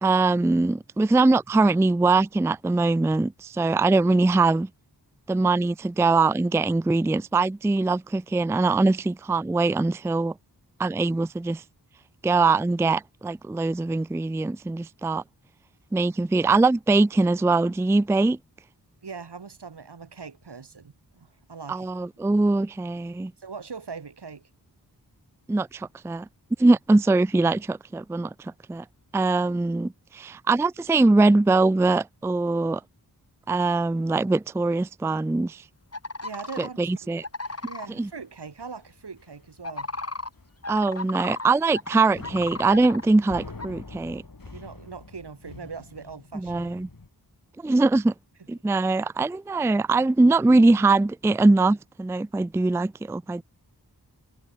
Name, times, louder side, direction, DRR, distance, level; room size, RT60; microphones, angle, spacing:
voice 1, 0.0-4.7 5.3-10.3 10.8-11.6 12.2-15.2 15.9-18.4 21.7-23.3 25.5-26.3 26.6-28.8 29.1-32.8 33.5-35.6 36.6-37.3 38.0-38.1 40.7-44.2 46.3-46.9 47.6-48.1 48.5-53.4, right 3 dB, 5° right, 0.4 m, -22 dB
voice 2, 19.0-21.9 23.4-24.4 36.2-36.8 37.7-39.9 44.5-46.7, right 5 dB, 80° right, 2.5 m, -40 dB
sound 1, 35.9-36.7 37.2-37.9 39.6-41.5 41.7-43.1 43.6-43.7, left 2 dB, 35° left, 3.4 m, -35 dB
sound 2, 36.3-37.1 37.4-37.8 38.0-38.3 38.6-38.8 39.2-39.3 39.7-40.1 40.3-40.5 40.9-41.8 42.1-47.1, left 3 dB, 55° left, 6.2 m, -45 dB
cardioid pair, 45°, 40 cm